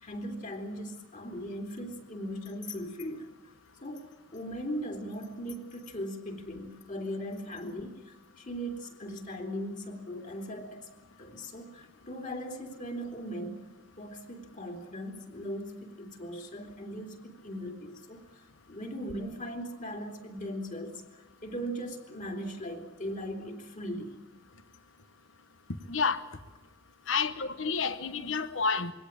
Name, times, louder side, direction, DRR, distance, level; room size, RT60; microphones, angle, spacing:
voice 1, 0.0-3.3 3.8-10.9 11.2-13.7 14.0-18.2 18.7-21.0 21.4-24.2, equal, 40° left, 3.2 m, -39 dB
voice 2, 25.9-26.2 27.1-28.9, left 5 dB, 75° left, 1.1 m, -29 dB
23.0 x 17.0 x 8.8 m
head